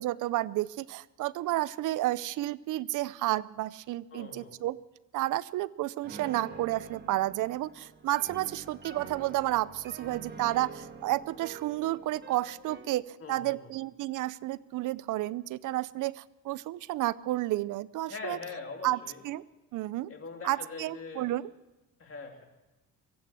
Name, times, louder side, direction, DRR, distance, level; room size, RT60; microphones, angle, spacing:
voice 1, 0.0-4.8 5.1-18.4 18.8-19.0 19.2-19.4 19.7-20.1 20.4-21.5, right 16 dB, 75° right, 19 dB, 0.5 m, -31 dB
voice 2, 4.1-4.6 13.2-13.7 18.1-19.2 20.1-21.4 22.0-22.4, left 4 dB, 45° left, 3 dB, 2.7 m, -42 dB
Piano, 6.0-13.0, right 4 dB, 30° right, 1.7 m, -46 dB
23.5 x 8.6 x 6.1 m, 1.1 s
cardioid pair, 105°, 32 cm